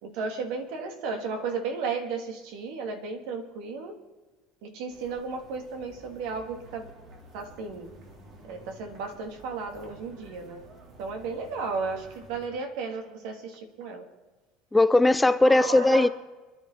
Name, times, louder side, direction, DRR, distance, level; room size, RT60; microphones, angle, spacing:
voice 1, 0.0-3.9 4.6-6.9 7.3-7.9 8.5-10.6 11.0-14.1 15.4-16.1, right 4 dB, 75° right, 2.8 m, -34 dB
sound 1, 4.9-12.5, right 1 dB, 50° right, 3.5 m, -51 dB
voice 2, 14.7-16.1, left 2 dB, 10° left, 0.4 m, -19 dB
26.5 x 11.0 x 4.1 m
cardioid pair, 145°, 0 cm